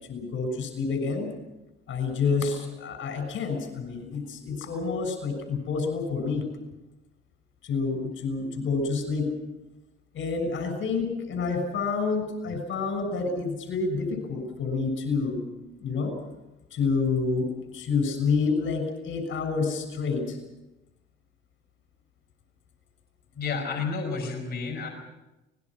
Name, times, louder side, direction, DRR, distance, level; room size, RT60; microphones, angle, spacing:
voice 1, 0.1-1.3 1.9-6.4 7.6-9.3 10.1-15.4 15.8-16.1 16.7-17.5 17.7-20.4, left 4 dB, 70° left, 6 dB, 6.5 m, -28 dB
voice 2, 23.4-24.9, left 4 dB, 50° left, 0 dB, 5.6 m, -30 dB
24.0 x 20.5 x 6.2 m, 1.0 s
cardioid pair, 75°, 21 cm